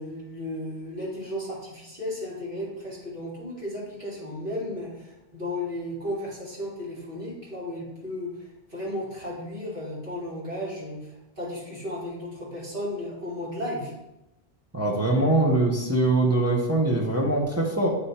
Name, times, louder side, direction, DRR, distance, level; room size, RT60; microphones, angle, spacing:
voice 1, 0.0-13.9, left 1 dB, 55° right, -7 dB, 2.7 m, -34 dB
voice 2, 14.7-17.9, right 2 dB, 15° right, -2 dB, 0.8 m, -22 dB
8.7 x 3.5 x 4.3 m, 0.92 s
omnidirectional pair, 1.1 m